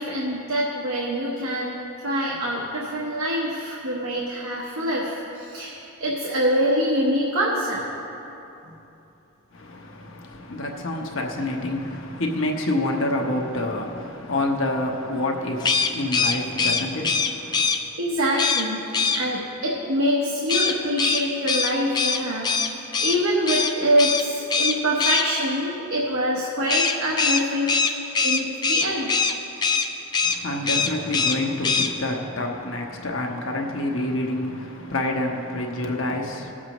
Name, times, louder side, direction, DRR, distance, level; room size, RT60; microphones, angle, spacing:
voice 1, 0.0-7.8 18.0-27.8 28.2-29.2, equal, 80° right, 1.1 m, -25 dB
voice 2, 9.5-17.7 30.2-36.5, left 1 dB, 65° left, 1.1 m, -28 dB
sound 1, 15.6-17.8 18.4-18.6 18.9-19.2 20.5-23.2 23.5-23.7 24.0-24.2 24.5-25.2 26.7-29.3 29.6-29.9 30.1-30.4 30.7-31.4 31.6-31.9, left 5 dB, 20° left, 0.3 m, -22 dB
18.5 x 7.4 x 3.0 m
head